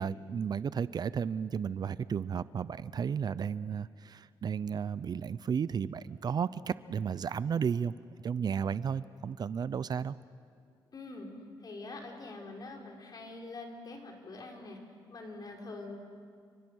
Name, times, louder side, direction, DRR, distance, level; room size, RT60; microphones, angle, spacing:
voice 1, 0.0-7.9 8.2-10.2, right 7 dB, 50° right, 17 dB, 0.6 m, -33 dB
voice 2, 10.9-11.3 11.6-14.8 15.1-16.0, left 2 dB, 50° left, 2 dB, 4.4 m, -44 dB
29.5 x 24.5 x 6.4 m, 2.2 s
cardioid pair, 90°, 9 cm